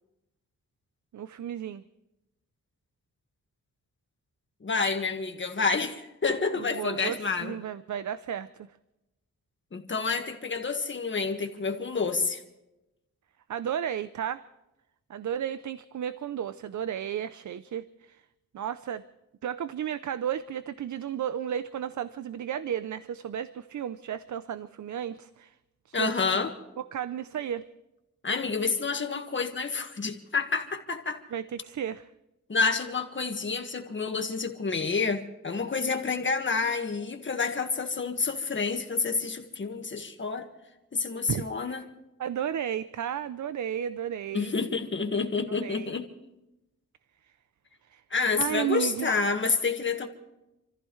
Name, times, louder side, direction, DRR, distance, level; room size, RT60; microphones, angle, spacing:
voice 1, 1.1-1.8 6.6-8.5 13.5-14.4 15.1-18.2 18.5-19.0 19.4-25.5 25.9-26.1 26.8-27.6 31.3-32.1 41.3-41.8 42.2-44.5 45.5-46.0 47.9-48.0 48.4-49.2, right 9 dB, 75° right, 13 dB, 0.6 m, -33 dB
voice 2, 4.6-7.5 9.7-12.4 25.9-26.5 28.2-31.2 32.5-40.5 40.9-41.8 44.3-46.1 48.1-50.1, left 4 dB, 40° left, 5 dB, 1.7 m, -29 dB
28.5 x 14.5 x 3.2 m, 0.93 s
wide cardioid pair, 140°, 30 cm